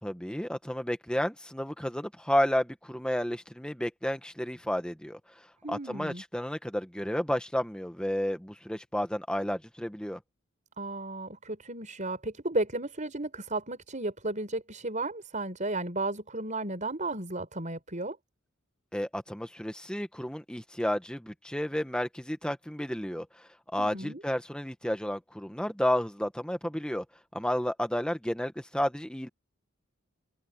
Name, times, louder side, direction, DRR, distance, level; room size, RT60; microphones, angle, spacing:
voice 1, 0.0-10.2 18.9-27.0 27.3-29.3, equal, 5° left, 1.5 m, -32 dB
voice 2, 5.6-6.2 10.8-18.2 23.8-24.2, right 2 dB, 35° right, 6.0 m, -34 dB
head